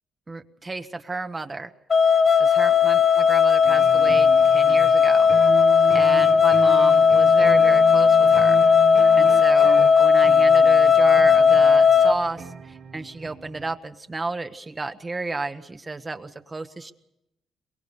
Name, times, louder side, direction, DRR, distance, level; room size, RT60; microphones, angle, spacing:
voice 1, 0.3-1.7 2.4-5.3 5.9-8.6 9.2-16.9, right 3 dB, 25° right, 7 dB, 1.0 m, -32 dB
sound 1, 1.9-12.1, left 6 dB, 40° left, 0.9 m, -16 dB
sound 2, 3.6-13.8, right 6 dB, 55° right, 1.2 m, -36 dB
23.5 x 21.5 x 6.9 m, 0.86 s
cardioid pair, 90°, 0 cm